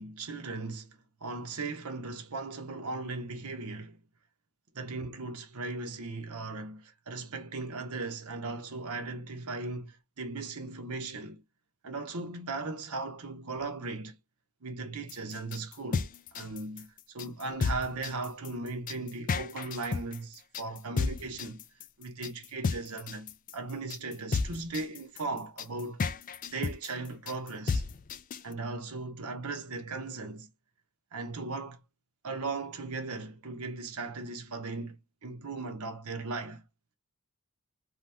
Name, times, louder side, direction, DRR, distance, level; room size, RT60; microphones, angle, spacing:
voice 1, 0.0-4.0 4.7-11.4 11.8-14.2 14.6-21.6 22.0-26.0 26.5-27.8 28.4-30.5 31.1-31.8 32.2-36.6, right 3 dB, 80° right, 0.8 m, -38 dB
sound 1, 15.1-28.5, left 4 dB, 40° left, 0.3 m, -33 dB
2.8 x 2.3 x 3.3 m
head